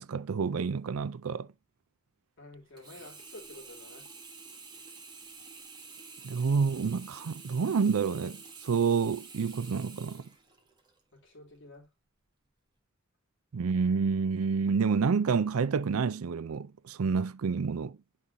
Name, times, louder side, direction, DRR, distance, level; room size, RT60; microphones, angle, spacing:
voice 1, 0.0-1.5 6.2-10.3 13.5-18.0, right 5 dB, 75° right, 0.5 m, -28 dB
voice 2, 2.4-4.1 11.1-11.9, left 2 dB, 55° left, 3.3 m, -50 dB
Sink (filling or washing), 2.8-11.0 11.5-11.6, right 4 dB, 20° right, 1.6 m, -49 dB
9.9 x 5.5 x 2.7 m
head